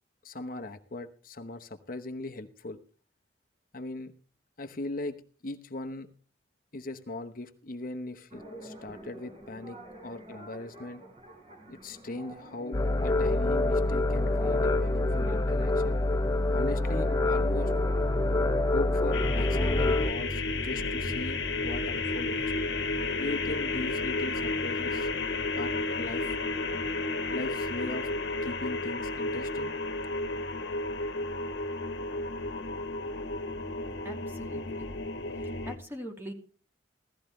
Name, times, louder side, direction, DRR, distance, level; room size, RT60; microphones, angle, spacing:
voice 1, 0.2-2.8 3.7-4.1 4.6-6.1 6.7-11.0 11.7-16.0 16.5-17.7 18.7-22.4 23.2-25.1 25.5-26.4 27.3-28.1 28.4-29.7, left 2 dB, 50° left, 6 dB, 1.0 m, -39 dB
sound 1, 8.3-19.7, right 2 dB, 30° right, 4.1 m, -45 dB
sound 2, 12.7-20.1, left 2 dB, 20° left, 0.6 m, -26 dB
sound 3, 19.1-35.8, left 2 dB, 75° left, 1.4 m, -32 dB
voice 2, 34.0-34.9 35.4-36.3, equal, 15° right, 1 dB, 2.7 m, -43 dB
16.5 x 14.0 x 3.2 m, 0.39 s
head